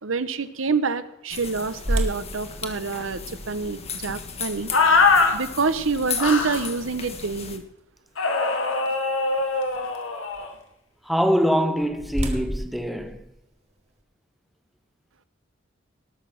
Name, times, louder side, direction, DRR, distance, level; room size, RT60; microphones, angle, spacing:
voice 1, 0.0-5.0 5.3-7.6, right 4 dB, 80° right, 0.9 m, -27 dB
sound 1, 1.3-7.6, left 6 dB, 30° left, 1.4 m, -36 dB
sound 2, 1.8-7.8 8.3-8.4 9.0-9.3 11.3-14.0, right 1 dB, 35° right, 1.9 m, -33 dB
sound 3, 4.7-5.3 6.2-6.7 8.2-10.5, left 4 dB, 75° left, 2.1 m, -21 dB
voice 2, 11.0-13.2, equal, ahead, 0.9 m, -23 dB
19.0 x 6.3 x 7.1 m
head